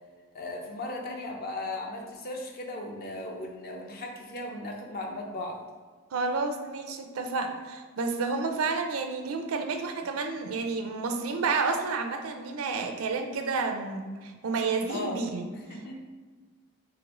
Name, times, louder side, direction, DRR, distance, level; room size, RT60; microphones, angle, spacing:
voice 1, 0.3-5.6 14.9-15.2 15.7-16.0, left 2 dB, 45° left, 1 dB, 0.6 m, -36 dB
voice 2, 6.1-16.0, right 4 dB, 75° right, 5 dB, 0.4 m, -30 dB
3.8 x 3.3 x 2.9 m, 1.4 s
head